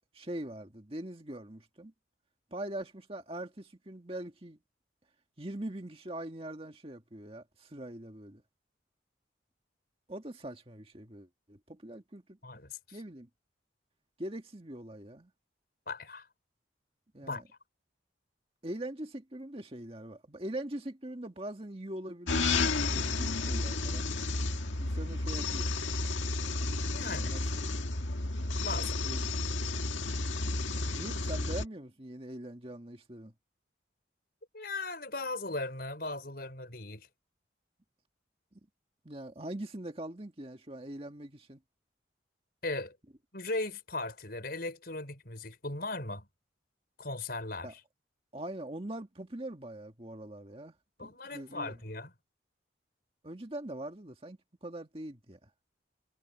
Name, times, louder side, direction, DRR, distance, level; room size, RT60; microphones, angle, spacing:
voice 1, 0.1-1.9 2.5-4.6 5.4-8.4 10.1-12.4 12.9-13.3 14.2-15.3 17.1-17.4 18.6-24.1 24.8-25.8 27.0-27.7 28.7-29.3 30.9-33.3 39.0-41.6 47.6-47.7 48.3-51.8 53.2-55.5, right 1 dB, 30° right, 2.0 m, -42 dB
voice 2, 12.4-13.0 15.9-16.3 17.2-17.4 26.9-27.3 28.6-29.0 34.5-37.1 42.6-43.0 43.3-46.3 47.0-47.8 51.0-52.1, left 2 dB, 55° left, 5.7 m, -38 dB
sound 1, 22.3-31.7, left 3 dB, 85° left, 2.0 m, -32 dB
head